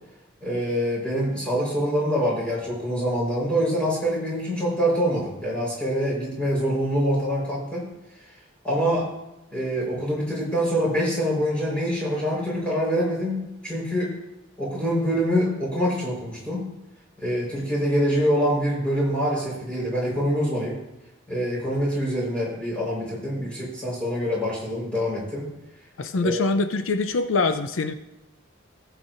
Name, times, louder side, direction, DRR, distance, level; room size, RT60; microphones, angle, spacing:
voice 1, 0.4-7.9 8.6-9.1 9.5-14.1 14.6-16.6 17.2-20.8 21.3-25.5 26.2-26.4, equal, 5° left, -5 dB, 4.3 m, -25 dB
voice 2, 26.0-27.9, left 3 dB, 75° left, 9 dB, 0.5 m, -24 dB
17.5 x 8.0 x 2.6 m, 0.96 s
head